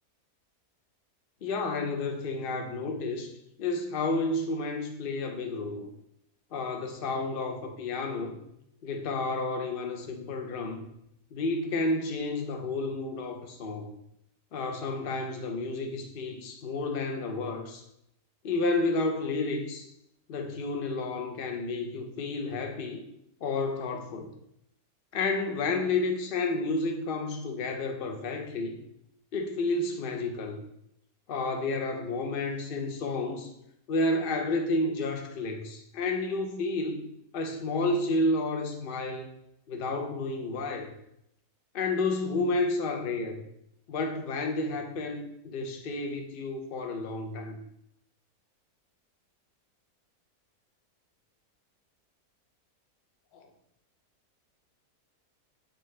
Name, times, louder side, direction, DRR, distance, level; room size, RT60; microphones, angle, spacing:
voice 1, 1.4-3.3 3.6-5.9 6.5-8.4 8.8-10.8 11.3-13.9 14.5-17.8 18.4-19.9 20.3-23.0 23.4-24.3 25.1-28.8 29.3-30.6 31.3-33.5 33.9-37.1 37.3-39.3 39.7-40.9 41.7-43.4 43.9-47.6 53.3-53.5, left 2 dB, 45° left, 4 dB, 0.7 m, -31 dB
7.8 x 3.7 x 3.2 m, 0.77 s
omnidirectional pair, 1.6 m